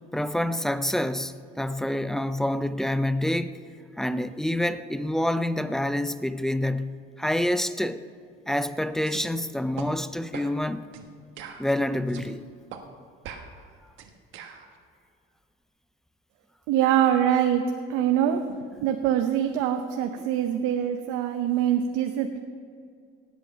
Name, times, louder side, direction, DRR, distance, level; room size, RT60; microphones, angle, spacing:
voice 1, 0.1-3.6 4.0-8.1 8.5-10.9 11.6-12.4, left 1 dB, ahead, 13 dB, 0.4 m, -27 dB
sound 1, 9.0-9.3 9.8-9.9 10.3-10.5 10.9-11.1 11.4-12.3 12.7-12.8 13.2-14.7, right 7 dB, 70° right, 1.3 m, -41 dB
voice 2, 16.7-17.6 17.9-22.4, right 10 dB, 90° right, 6 dB, 0.7 m, -24 dB
18.0 x 8.3 x 5.3 m, 2.4 s
cardioid pair, 130°, 21 cm